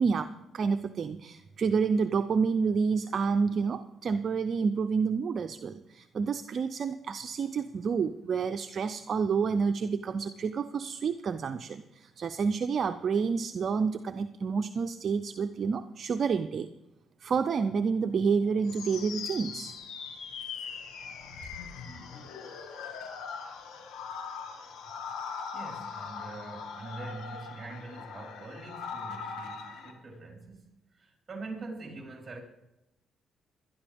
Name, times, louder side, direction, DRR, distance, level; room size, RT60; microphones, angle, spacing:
voice 1, 0.0-16.7 17.2-19.7, right 5 dB, 50° right, 0.5 m, -29 dB
sound 1, 18.7-29.9, left 6 dB, 90° left, 1.8 m, -41 dB
voice 2, 25.5-32.4, right 3 dB, 30° right, 4.3 m, -44 dB
18.5 x 12.0 x 3.5 m
cardioid pair, 90°, 0 cm